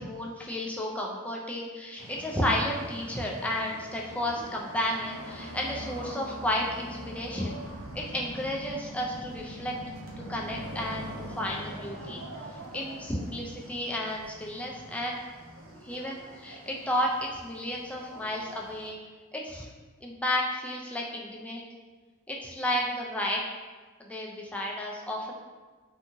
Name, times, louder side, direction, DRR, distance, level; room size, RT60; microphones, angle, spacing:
voice 1, 0.0-7.6 7.9-9.8 10.3-12.2 12.7-15.2 15.8-19.0 19.3-19.7 20.0-21.6 22.3-23.4 24.0-25.3, left 1 dB, 5° left, -2 dB, 0.3 m, -32 dB
sound 1, 2.0-18.9, equal, 65° right, 0.5 m, -43 dB
2.7 x 2.6 x 2.5 m, 1.3 s
head